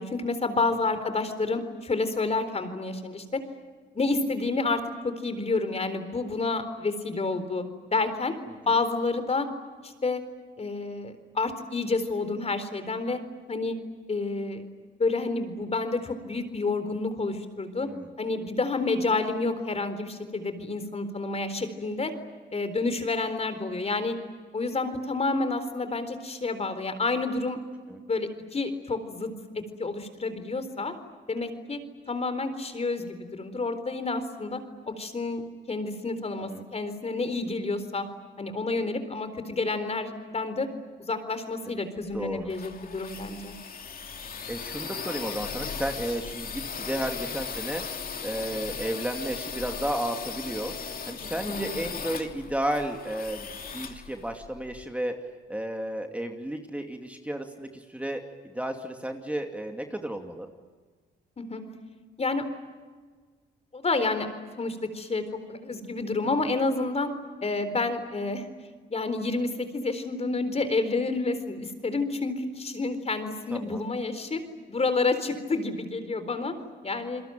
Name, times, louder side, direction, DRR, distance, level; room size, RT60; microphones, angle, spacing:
voice 1, 0.0-3.4 3.9-7.6 7.9-8.3 8.7-9.5 9.8-10.2 10.6-13.2 13.5-13.7 14.1-14.6 15.0-17.9 18.2-22.1 22.5-24.1 24.5-27.6 28.0-29.3 29.5-30.9 31.3-31.8 32.1-34.6 35.0-35.4 35.7-38.0 38.4-40.7 41.1-43.6 51.2-51.7 61.4-61.6 62.2-62.4 63.7-64.3 64.6-67.1 67.4-68.5 68.9-74.4 74.7-76.5 76.8-77.2, left 3 dB, 30° left, 10 dB, 4.0 m, -29 dB
sound 1, 42.1-54.8, left 6 dB, 45° left, 2.9 m, -37 dB
voice 2, 42.1-42.5 44.5-47.8 48.2-50.7 51.1-53.5 53.7-55.1 55.5-60.5 66.4-66.5 73.5-73.8, right 1 dB, 5° right, 4 dB, 2.6 m, -33 dB
29.0 x 22.0 x 9.1 m, 1.5 s
cardioid pair, 90°, 20 cm